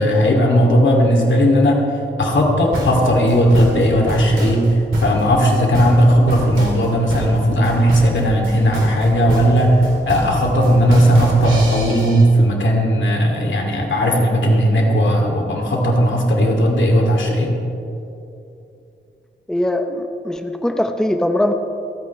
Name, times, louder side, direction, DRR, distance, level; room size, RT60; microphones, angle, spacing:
voice 1, 0.0-1.8 2.2-4.7 5.0-17.5, equal, 70° left, 0 dB, 2.5 m, -16 dB
sound 1, 2.7-12.2, right 2 dB, 80° right, 3.5 m, -25 dB
voice 2, 19.5-21.5, left 1 dB, 5° left, 5 dB, 0.7 m, -21 dB
27.5 x 9.2 x 3.2 m, 2.7 s
wide cardioid pair, 90°, 20 cm